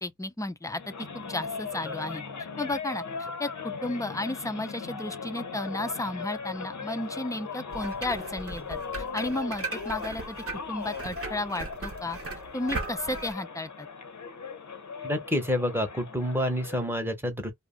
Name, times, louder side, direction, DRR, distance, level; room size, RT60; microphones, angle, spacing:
voice 1, 0.0-0.8 1.1-2.2 2.6-10.4 10.7-12.2 12.5-13.9, left 2 dB, 10° left, 0.4 m, -33 dB
sound 1, 0.7-16.9, left 5 dB, 60° left, 0.6 m, -39 dB
sound 2, 7.7-13.3, right 3 dB, 45° right, 0.8 m, -38 dB
voice 2, 15.0-17.5, equal, 5° right, 0.8 m, -28 dB
2.4 x 2.0 x 3.6 m
wide cardioid pair, 55°, 32 cm